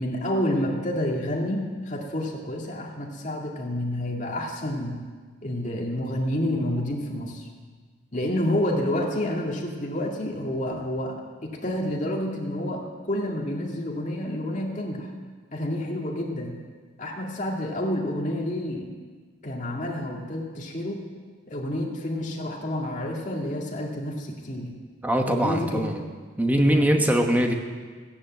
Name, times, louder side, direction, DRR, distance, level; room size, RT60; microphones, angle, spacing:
voice 1, 0.0-5.0 5.4-7.5 8.1-15.1 15.5-16.6 17.0-18.9 19.4-21.0 21.5-24.7 25.3-25.9 26.7-27.1, left 1 dB, 40° left, -1 dB, 2.2 m, -29 dB
voice 2, 25.0-26.0 26.4-27.5, equal, 10° right, 3 dB, 1.1 m, -22 dB
14.0 x 9.9 x 7.6 m, 1.5 s
head